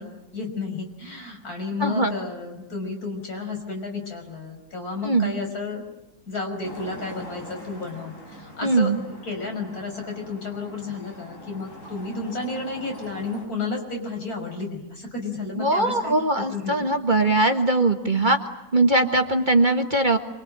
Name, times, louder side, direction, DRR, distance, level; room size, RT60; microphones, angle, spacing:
voice 1, 0.0-5.8 6.3-16.7, left 3 dB, 75° left, 2 dB, 6.1 m, -32 dB
voice 2, 1.8-2.1 5.0-5.3 8.6-9.0 15.6-18.4 18.7-20.2, right 2 dB, 30° right, 6 dB, 1.6 m, -21 dB
Traffic noise roadway noise, 6.6-13.5, left 1 dB, 55° left, 5.7 m, -43 dB
27.5 x 23.5 x 8.9 m, 0.92 s
omnidirectional pair, 1.6 m